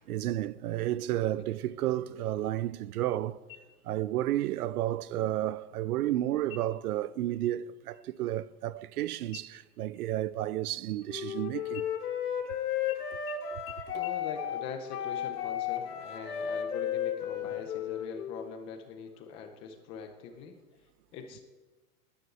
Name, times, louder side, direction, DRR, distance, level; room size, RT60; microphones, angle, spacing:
voice 1, 0.0-3.4 3.8-11.9 13.5-13.6, right 13 dB, 75° right, 0.7 m, -32 dB
sound 1, 3.5-4.2 4.6-4.7 5.2-5.7 6.4-7.0 7.3-7.6 7.9-9.0 9.3-11.3 11.7-12.5 12.9-13.0 13.3-13.4 13.7-13.8 14.0-14.1, left 13 dB, 65° left, 2.3 m, -51 dB
Wind instrument woodwind instrument, 11.1-18.5, left 9 dB, 85° left, 2.3 m, -34 dB
voice 2, 13.9-21.4, left 6 dB, 15° left, 0.5 m, -43 dB
9.6 x 9.5 x 9.2 m
supercardioid pair, 165°, 45 cm